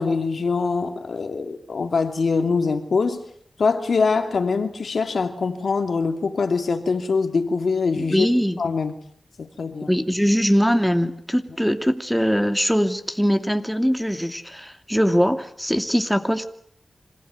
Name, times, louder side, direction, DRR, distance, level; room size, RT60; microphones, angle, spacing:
voice 1, 0.0-3.2 3.6-8.3 8.6-8.9 9.4-9.9, left 4 dB, 80° left, 6 dB, 2.7 m, -23 dB
voice 2, 7.9-8.6 9.9-16.4, equal, ahead, 7 dB, 2.6 m, -21 dB
26.5 x 16.5 x 9.5 m, 0.67 s
cardioid pair, 45°, 0 cm